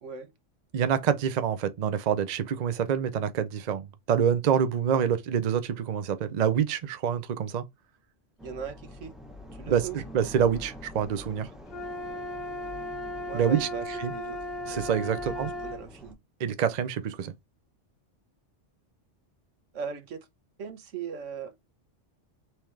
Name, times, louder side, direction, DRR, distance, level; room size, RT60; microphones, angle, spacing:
voice 1, 0.7-7.6 9.6-11.5 13.3-13.7 14.0-14.1 14.7-15.5 16.4-17.3, right 8 dB, 50° right, 0.6 m, -26 dB
sound 1, 8.4-16.1, left 1 dB, ahead, 0.7 m, -46 dB
voice 2, 8.4-9.1 9.5-10.0 13.3-14.4 15.2-16.2 19.7-20.2 20.6-21.7, right 6 dB, 85° right, 1.3 m, -38 dB
sound 2, 11.7-15.8, left 1 dB, 60° left, 1.0 m, -36 dB
4.4 x 3.5 x 3.1 m
omnidirectional pair, 1.2 m